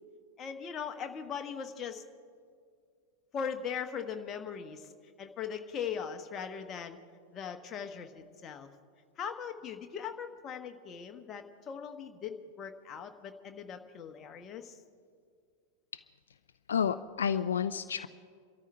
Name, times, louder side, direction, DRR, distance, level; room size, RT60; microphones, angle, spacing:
voice 1, 0.4-2.0 3.3-4.9 5.2-7.0 7.3-8.7 9.2-14.8, left 7 dB, 25° left, 6 dB, 1.2 m, -39 dB
voice 2, 16.7-18.1, left 7 dB, 65° left, 12 dB, 0.4 m, -30 dB
28.5 x 13.5 x 3.4 m, 2.2 s
figure-of-eight pair, 90°, 0 cm